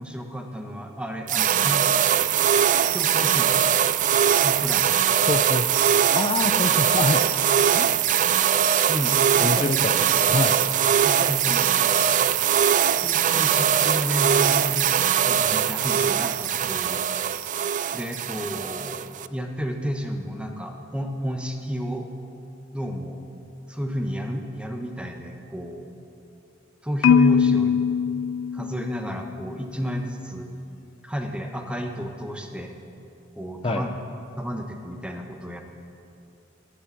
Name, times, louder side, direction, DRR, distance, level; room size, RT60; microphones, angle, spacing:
voice 1, 0.0-1.8 2.1-2.2 2.9-3.6 4.4-4.9 8.9-9.7 10.3-10.6 11.0-11.7 12.9-17.0 17.9-22.1 22.7-23.2 23.7-25.9 26.8-27.8 28.5-30.5 31.0-32.7 33.3-33.9 34.4-35.6, equal, 5° right, 3 dB, 1.1 m, -31 dB
sound 1, 1.3-19.3, right 9 dB, 40° right, 0.4 m, -21 dB
voice 2, 5.3-5.7 6.1-7.2 7.7-7.9 9.4-9.8 10.3-10.5 33.6-33.8, left 2 dB, 30° left, 5 dB, 0.6 m, -25 dB
Marimba xylophone, 27.0-29.2, left 6 dB, 80° left, 0.4 m, -21 dB
12.0 x 11.5 x 8.5 m, 2.7 s
head